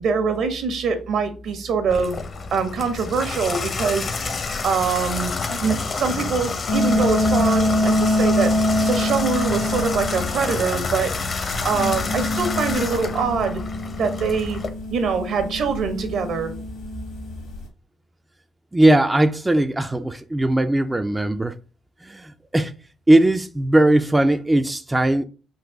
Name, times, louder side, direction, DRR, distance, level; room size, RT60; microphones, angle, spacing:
voice 1, 0.0-2.2 2.5-4.1 4.6-8.5 8.8-11.1 11.6-13.6 14.0-14.6 14.9-16.5, right 5 dB, 70° right, 1.1 m, -24 dB
Water tap faucet / Bathtub (filling or washing), 1.9-14.7, left 4 dB, 45° left, 0.7 m, -28 dB
sound 1, 6.7-17.6, left 1 dB, 80° left, 1.7 m, -25 dB
voice 2, 18.7-21.6 22.0-22.7 23.1-25.2, right 1 dB, 15° right, 0.3 m, -19 dB
4.0 x 2.5 x 4.7 m
cardioid pair, 90°, 0 cm